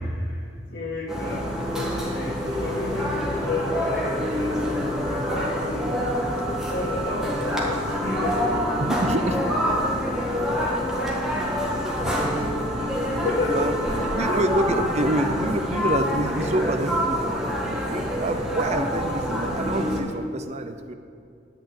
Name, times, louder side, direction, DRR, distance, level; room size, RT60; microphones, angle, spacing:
voice 1, 0.0-5.9 6.7-8.5 9.3-9.5 10.1-12.1 12.7-14.4 19.3-19.4, left 2 dB, 60° left, -2 dB, 2.4 m, -32 dB
sound 1, 1.1-20.0, equal, 5° right, 1.5 m, -26 dB
voice 2, 8.8-9.4 12.2-12.6 13.2-13.8 14.1-17.3 17.7-20.9, right 1 dB, 35° right, 8 dB, 0.5 m, -27 dB
10.5 x 5.7 x 8.6 m, 2.4 s
head